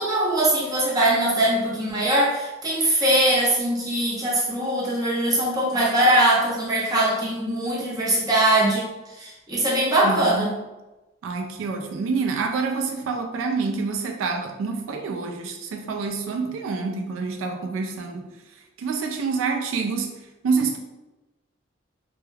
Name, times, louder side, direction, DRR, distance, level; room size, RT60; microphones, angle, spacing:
voice 1, 0.0-8.9 9.2-10.5, right 1 dB, 20° right, -6 dB, 0.7 m, -21 dB
voice 2, 10.0-10.5 11.2-18.3 18.8-20.1 20.4-20.8, right 4 dB, 85° right, 4 dB, 0.3 m, -27 dB
2.2 x 2.1 x 3.1 m, 1.1 s
head